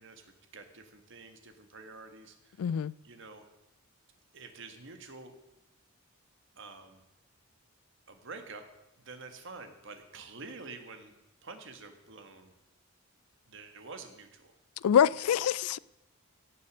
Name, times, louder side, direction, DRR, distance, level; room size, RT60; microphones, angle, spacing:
voice 1, 0.0-2.7 3.0-3.5 4.3-5.3 6.5-7.0 8.1-8.6 9.0-11.1 11.4-12.5 13.5-14.6, right 4 dB, 60° right, 1.6 m, -48 dB
voice 2, 2.6-2.9 14.8-15.8, left 8 dB, 90° left, 0.3 m, -25 dB
17.0 x 6.7 x 6.3 m
head